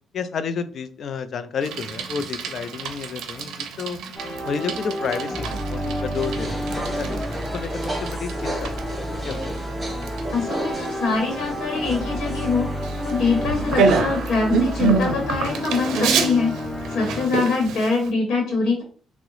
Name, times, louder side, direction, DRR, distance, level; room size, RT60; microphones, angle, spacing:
voice 1, 0.1-4.0 4.4-6.6 7.0-7.2 7.5-7.7 8.0-8.7 9.2-9.8 17.0-17.3, left 6 dB, 60° left, 11 dB, 0.4 m, -30 dB
Bicycle, 1.6-18.1, right 5 dB, 80° right, 0.5 m, -28 dB
sound 1, 4.1-17.3, equal, 20° left, 1.3 m, -30 dB
sound 2, 6.1-14.8, equal, 20° right, 1.3 m, -34 dB
voice 2, 10.3-12.7 13.0-16.6 16.9-18.8, left 4 dB, 75° left, 0 dB, 1.0 m, -23 dB
3.5 x 2.0 x 3.1 m, 0.43 s
cardioid pair, 90°, 0 cm